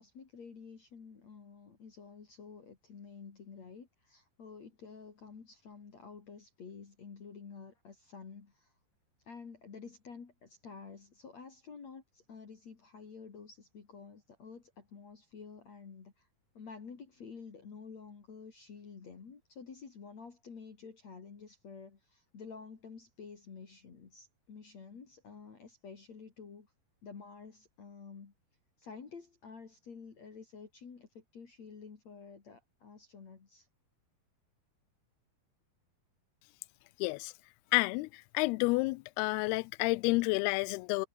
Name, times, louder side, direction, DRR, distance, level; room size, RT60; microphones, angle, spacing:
voice 1, 0.0-8.7 9.2-16.3 16.5-26.7 27.0-28.3 28.8-33.7, left 5 dB, 45° left, 4.3 m, -50 dB
voice 2, 37.0-37.3 37.7-41.1, left 24 dB, 85° left, 2.5 m, -30 dB
omnidirectional pair, 4.5 m